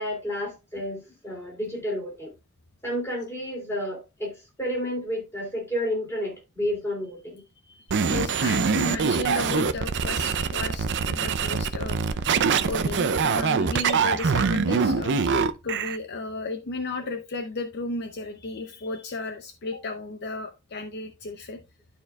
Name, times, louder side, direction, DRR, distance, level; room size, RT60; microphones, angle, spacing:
voice 1, 0.0-2.3 2.8-7.4 8.8-9.1, equal, 10° left, 3.1 m, -31 dB
voice 2, 7.7-12.2 12.6-21.6, left 2 dB, 50° left, 0.7 m, -34 dB
sound 1, 7.9-16.0, right 5 dB, 55° right, 0.5 m, -24 dB
12.0 x 4.4 x 2.3 m
head